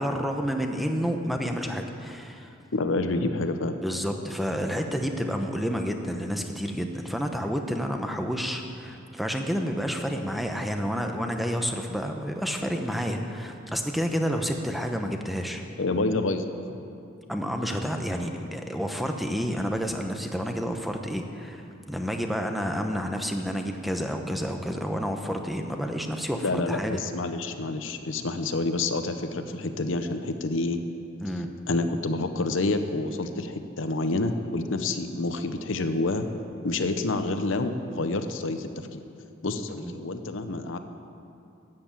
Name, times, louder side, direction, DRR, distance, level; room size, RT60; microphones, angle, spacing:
voice 1, 0.0-2.5 3.8-15.6 17.3-27.0 31.2-31.5 39.7-40.0, equal, ahead, 4 dB, 0.8 m, -30 dB
voice 2, 2.7-3.7 15.8-16.8 26.4-30.8 31.7-36.3 36.6-39.0 39.4-40.8, left 2 dB, 70° left, 8 dB, 0.8 m, -28 dB
13.0 x 7.8 x 8.7 m, 2.7 s
head